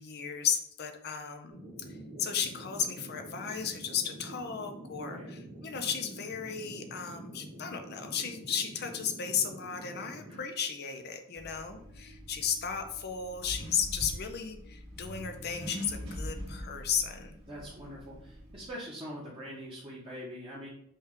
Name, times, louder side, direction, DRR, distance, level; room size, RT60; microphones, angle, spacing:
voice 1, 0.0-17.4, left 7 dB, 50° left, 6 dB, 0.5 m, -34 dB
sound 1, 1.5-10.4, right 1 dB, 85° right, 1.3 m, -47 dB
voice 2, 5.0-5.3 10.3-10.4 17.5-20.7, equal, 25° right, -6 dB, 0.9 m, -43 dB
Accelerating revving vroom, 11.4-18.7, equal, 70° right, 1.7 m, -43 dB
5.4 x 2.3 x 3.6 m, 0.69 s
head